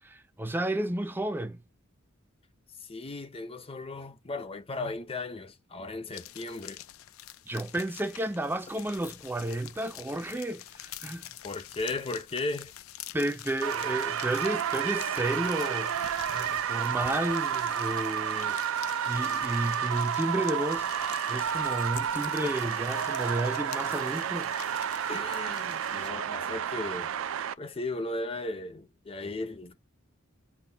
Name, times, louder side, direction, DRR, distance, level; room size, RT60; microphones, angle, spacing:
voice 1, 0.0-1.6 7.5-11.3 13.1-24.5, right 1 dB, 10° right, 0.4 m, -32 dB
voice 2, 2.8-6.8 11.4-12.7 22.4-22.7 25.1-27.1 27.6-29.8, left 2 dB, 30° left, 0.6 m, -36 dB
sound 1, 6.1-26.1, left 13 dB, 80° left, 0.4 m, -46 dB
sound 2, 13.6-27.5, right 8 dB, 70° right, 0.4 m, -31 dB
5.8 x 2.2 x 3.4 m
head